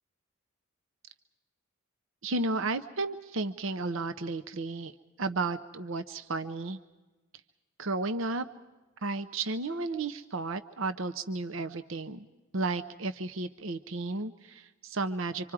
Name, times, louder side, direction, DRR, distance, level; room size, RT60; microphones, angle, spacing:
voice 1, 2.2-4.9 5.2-6.8 7.8-8.5 9.0-12.3 12.5-15.5, right 3 dB, 70° right, 10 dB, 0.8 m, -33 dB
26.0 x 25.5 x 4.8 m, 1.2 s
head